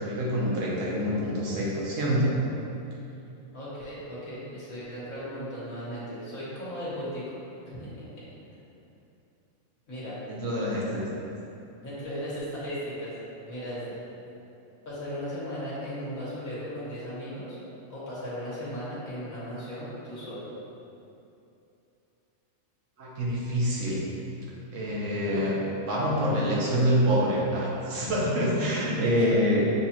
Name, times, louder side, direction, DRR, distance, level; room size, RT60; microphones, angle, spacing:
voice 1, 0.0-2.4 10.3-11.1 23.0-24.0 24.7-25.6 25.9-29.6, equal, 65° right, -5 dB, 1.1 m, -26 dB
voice 2, 3.5-7.3 7.7-8.3 9.9-10.2 11.8-13.2 13.5-14.0 14.9-17.6 17.9-20.5, equal, 70° left, -9 dB, 1.7 m, -36 dB
7.0 x 2.4 x 2.8 m, 2.8 s
omnidirectional pair, 1.5 m